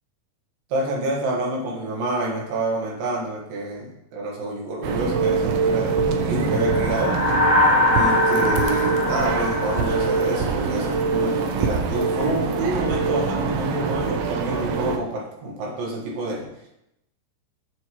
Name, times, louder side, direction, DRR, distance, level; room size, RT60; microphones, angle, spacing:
voice 1, 0.7-7.2 7.9-16.5, right 2 dB, 60° right, -2 dB, 2.9 m, -28 dB
sound 1, 4.8-15.0, right 4 dB, 85° right, 2.2 m, -24 dB
sound 2, 6.5-11.0, left 2 dB, 55° left, 2.0 m, -23 dB
7.9 x 7.2 x 3.0 m, 0.82 s
omnidirectional pair, 5.2 m